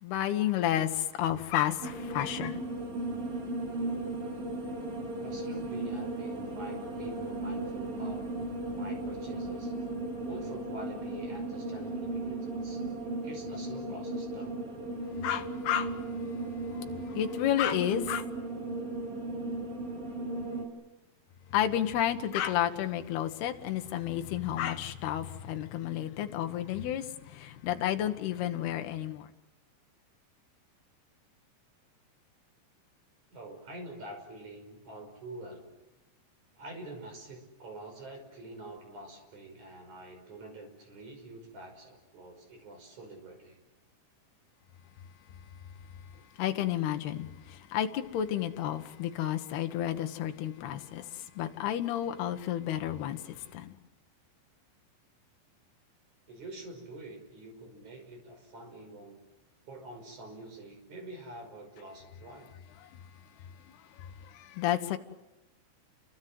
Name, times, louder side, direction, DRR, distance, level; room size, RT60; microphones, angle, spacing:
voice 1, 0.0-2.6 15.2-16.0 17.0-18.3 21.5-29.3 46.4-53.8 64.0-64.1 64.3-65.0, left 11 dB, 65° left, 6 dB, 3.0 m, -31 dB
sound 1, 1.8-20.6, right 2 dB, 85° right, 7.7 m, -36 dB
voice 2, 5.2-8.3 8.7-9.7 10.2-12.8 13.2-14.6 33.3-35.7 36.5-43.6 56.3-59.2 59.7-62.5, right 2 dB, 40° right, 4 dB, 6.6 m, -46 dB
29.5 x 24.0 x 7.8 m, 1.1 s
omnidirectional pair, 5.6 m